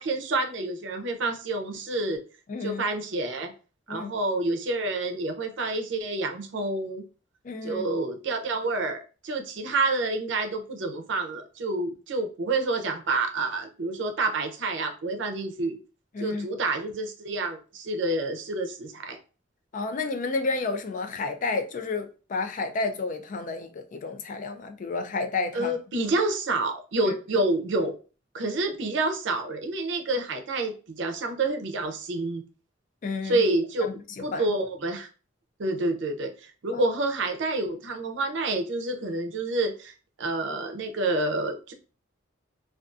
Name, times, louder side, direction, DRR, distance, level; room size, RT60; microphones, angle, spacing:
voice 1, 0.0-2.2 2.6-3.5 3.9-7.0 7.6-15.8 16.2-19.2 25.5-27.9 28.3-32.4 33.2-33.9 34.2-35.1 35.6-41.7, right 2 dB, 70° right, 0.5 m, -28 dB
voice 2, 2.5-2.8 3.9-4.1 7.4-7.8 16.1-16.5 19.7-25.7 27.0-27.1 33.0-33.4 33.8-34.4 36.7-36.8, left 3 dB, 45° left, 0.4 m, -31 dB
2.5 x 2.4 x 2.3 m
head